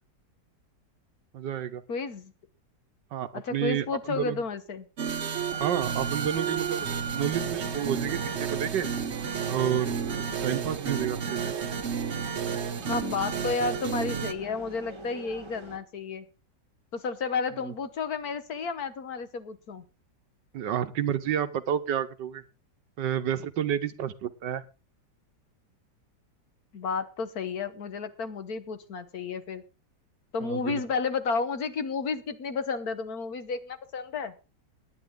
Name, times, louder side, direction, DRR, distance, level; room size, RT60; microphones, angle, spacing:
voice 1, 1.3-1.8 3.1-4.4 5.6-6.9 7.1-8.9 9.5-11.5 17.6-17.7 20.5-22.4 23.0-24.6 30.4-30.8, right 9 dB, 80° right, 11 dB, 1.6 m, -30 dB
voice 2, 1.9-2.3 3.3-4.9 12.9-16.2 16.9-19.8 26.7-29.6 30.3-34.3, left 4 dB, 60° left, 11 dB, 1.6 m, -32 dB
sound 1, 5.0-14.3, right 7 dB, 45° right, 1.1 m, -31 dB
sound 2, 5.5-15.8, right 2 dB, 15° right, 1.3 m, -43 dB
19.0 x 9.8 x 3.8 m, 0.31 s
omnidirectional pair, 1.9 m